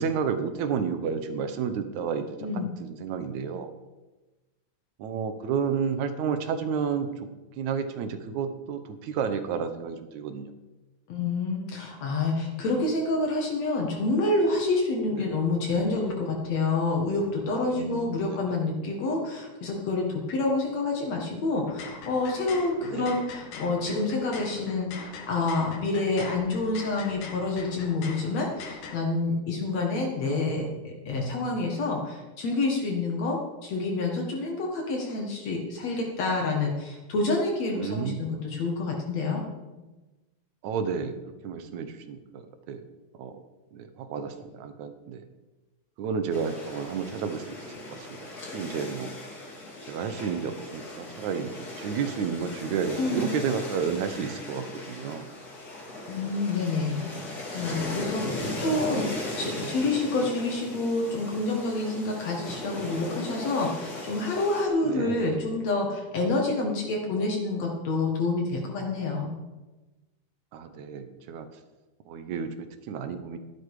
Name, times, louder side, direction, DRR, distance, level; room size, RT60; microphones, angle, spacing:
voice 1, 0.0-3.7 5.0-7.1 7.6-10.5 15.1-15.4 17.6-18.1 22.8-23.2 37.7-38.3 40.6-41.2 41.4-42.4 42.7-42.8 43.1-43.4 43.7-45.2 46.0-48.1 48.5-49.1 49.9-55.4 58.3-59.1 59.6-59.7 64.8-65.2 70.5-71.5 72.1-73.4, right 6 dB, 75° right, 9 dB, 2.4 m, -31 dB
voice 2, 11.1-39.4 53.0-53.3 56.1-57.1 57.5-69.3, left 3 dB, 65° left, 0 dB, 2.8 m, -28 dB
sound 1, 21.6-29.0, left 5 dB, 80° left, 2.9 m, -43 dB
sound 2, 46.3-64.7, left 2 dB, 30° left, 2.9 m, -38 dB
13.5 x 10.5 x 4.9 m, 1.1 s
omnidirectional pair, 3.4 m